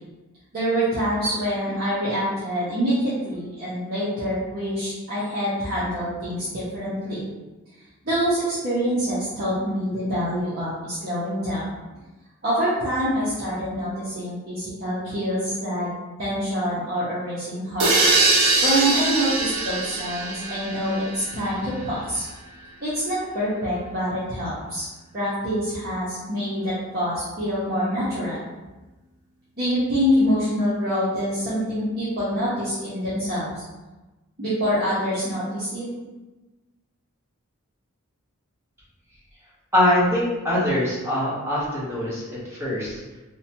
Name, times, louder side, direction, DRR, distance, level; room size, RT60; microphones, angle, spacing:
voice 1, 0.5-7.2 8.0-11.7 12.4-15.9 16.2-17.9 18.6-22.3 22.8-24.9 25.1-28.4 29.6-33.6 34.4-35.8, equal, 45° right, -11 dB, 0.7 m, -25 dB
sound 1, 17.8-21.5, right 3 dB, 85° right, 0.5 m, -22 dB
voice 2, 39.7-43.0, left 1 dB, 10° right, -8 dB, 0.8 m, -23 dB
2.6 x 2.2 x 2.8 m, 1.1 s
head